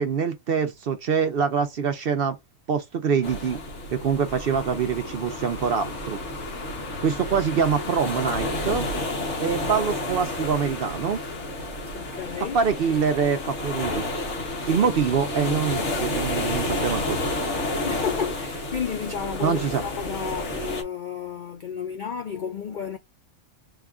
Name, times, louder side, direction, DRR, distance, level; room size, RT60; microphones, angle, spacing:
voice 1, 0.0-2.4 2.7-3.6 3.9-6.2 7.0-8.9 9.4-11.2 12.5-14.0 14.7-17.2 19.4-19.8, right 6 dB, 60° right, 0.6 m, -25 dB
sound 1, 3.2-20.8, left 1 dB, 60° left, 1.3 m, -30 dB
voice 2, 11.9-12.6 17.8-23.0, left 7 dB, 80° left, 0.4 m, -32 dB
3.6 x 2.4 x 3.5 m
omnidirectional pair, 1.4 m